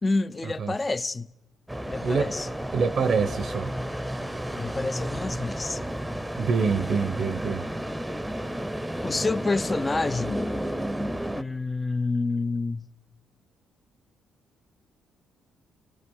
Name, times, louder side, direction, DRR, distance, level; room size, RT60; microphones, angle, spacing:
voice 1, 0.0-1.3 1.9-2.5 4.6-5.8 9.0-10.5 11.3-12.9, left 3 dB, 25° left, 0.7 m, -28 dB
sound 1, 1.7-11.4, equal, 5° right, 0.9 m, -32 dB
voice 2, 2.7-3.7 6.4-7.7, right 5 dB, 55° right, 1.0 m, -25 dB
26.5 x 18.5 x 5.5 m
cardioid pair, 90°, 0 cm